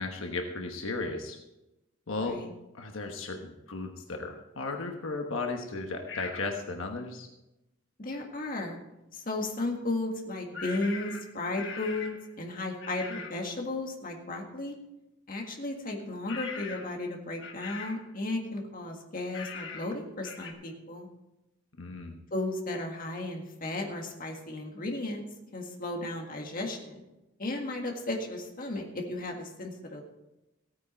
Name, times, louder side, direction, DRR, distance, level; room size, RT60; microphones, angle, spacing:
voice 1, 0.0-1.4 2.1-2.4 2.7-7.3 21.8-22.2, left 3 dB, 80° left, 3 dB, 1.2 m, -35 dB
voice 2, 2.2-2.5 8.0-8.8 9.1-14.8 15.3-21.1 22.3-25.2 25.5-27.0 27.4-30.0, left 2 dB, 45° left, 2 dB, 1.8 m, -34 dB
sound 1, 6.1-6.5 10.5-12.3 12.8-13.4 16.3-17.0 17.4-18.1 19.3-19.9 20.2-20.5, left 5 dB, 65° left, 1.5 m, -41 dB
16.0 x 9.3 x 4.4 m, 0.96 s
head